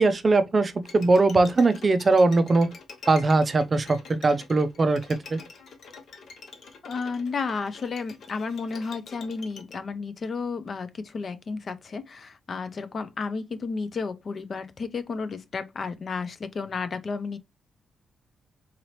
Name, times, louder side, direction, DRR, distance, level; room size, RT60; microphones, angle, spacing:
voice 1, 0.0-2.7 3.1-5.0 5.3-5.4, right 3 dB, 30° right, 0.4 m, -21 dB
Bowed string instrument, 0.8-9.8, left 4 dB, 65° left, 0.9 m, -46 dB
voice 2, 6.8-17.4, left 4 dB, 40° left, 0.4 m, -32 dB
3.9 x 2.8 x 3.0 m
wide cardioid pair, 140°, 0 cm